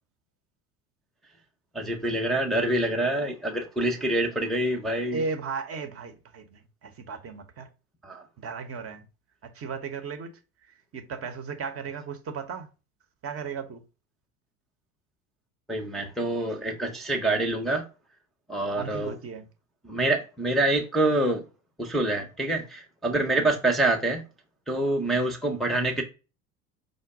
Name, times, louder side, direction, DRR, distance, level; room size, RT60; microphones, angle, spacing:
voice 1, 1.7-5.2 8.0-8.2 15.7-17.9 18.5-19.2 19.8-21.4 21.8-24.2 24.7-26.0, right 2 dB, ahead, 0.7 m, -26 dB
voice 2, 5.1-7.7 8.4-9.1 9.4-10.3 10.6-12.7 13.2-13.8 18.7-19.4 23.1-23.6 25.0-25.3, right 5 dB, 35° right, 0.8 m, -36 dB
5.1 x 2.1 x 4.7 m
hypercardioid pair, 70°, 42 cm